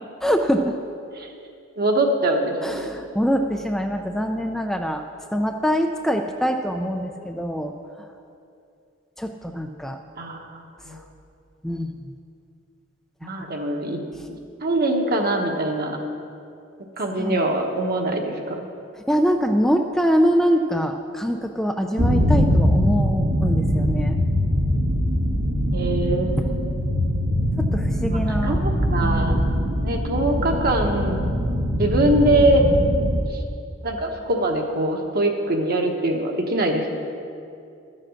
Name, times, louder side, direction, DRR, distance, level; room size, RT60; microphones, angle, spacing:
voice 1, 0.2-0.8 2.6-5.0 5.3-7.7 9.2-10.0 10.9-11.0 11.6-12.1 13.2-13.3 14.2-14.3 17.2-17.3 19.1-24.2 27.6-28.6 29.0-29.3, equal, ahead, 3 dB, 0.4 m, -24 dB
voice 2, 1.8-2.8 10.2-11.0 13.2-14.0 14.3-16.0 17.0-18.6 25.7-26.6 28.1-29.4 29.8-31.2 31.8-32.7 32.9-33.1 33.8-37.0, right 1 dB, 50° right, 2 dB, 1.2 m, -23 dB
sound 1, 22.0-33.2, equal, 70° right, 1.2 m, -22 dB
13.0 x 7.7 x 6.4 m, 2.6 s
head